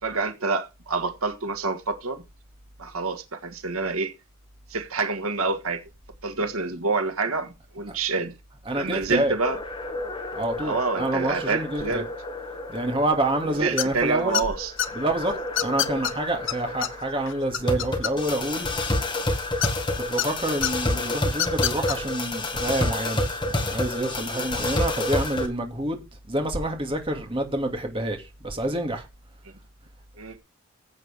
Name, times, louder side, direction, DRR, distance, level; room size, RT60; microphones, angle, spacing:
voice 1, 0.0-2.2 2.8-4.1 4.7-5.8 6.2-8.3 8.7-9.6 10.6-12.1 13.6-14.7 24.3-24.4 30.2-30.4, right 4 dB, 90° right, 1.7 m, -27 dB
voice 2, 8.7-9.3 10.3-12.0 12.7-14.4 14.9-18.7 20.1-26.0 26.3-29.1, right 1 dB, 25° right, 2.3 m, -27 dB
sound 1, 9.4-25.5, left 2 dB, 20° left, 1.8 m, -30 dB
sound 2, 13.8-14.0 14.3-14.9 15.6-16.1 16.5-16.6 16.8-16.9 17.3-18.4 19.6-20.3 20.6-20.7 21.3-22.0, left 11 dB, 60° left, 0.8 m, -25 dB
15.0 x 8.2 x 3.5 m
head